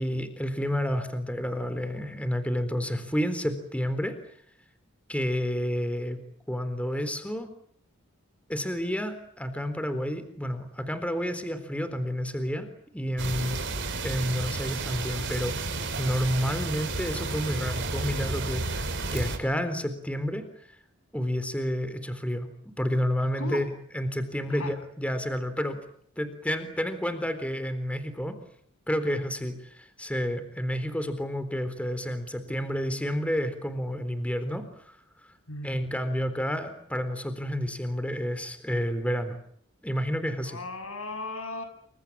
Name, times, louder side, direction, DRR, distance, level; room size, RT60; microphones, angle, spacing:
voice 1, 0.0-4.2 5.1-6.2 6.5-7.5 8.5-12.7 12.9-13.6 14.0-15.6 16.0-20.5 21.1-25.8 26.2-28.4 28.9-35.0 35.6-39.4 39.8-40.6, equal, 5° left, 10 dB, 3.8 m, -30 dB
sound 1, 13.2-19.4, right 3 dB, 60° right, 6.1 m, -32 dB
voice 2, 40.4-41.6, left 2 dB, 90° left, 9 dB, 7.9 m, -36 dB
28.5 x 26.0 x 7.5 m, 0.65 s
head